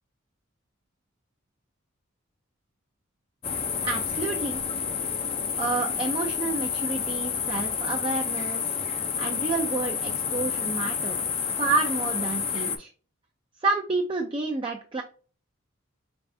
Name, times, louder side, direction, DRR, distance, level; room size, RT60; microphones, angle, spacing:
sound 1, 3.4-12.8, left 7 dB, 25° left, 0.5 m, -29 dB
voice 1, 3.8-4.6 5.6-8.7 9.2-11.2 11.6-12.9 13.6-15.0, right 3 dB, 25° right, 2 dB, 0.4 m, -29 dB
5.0 x 3.5 x 2.6 m, 0.39 s
head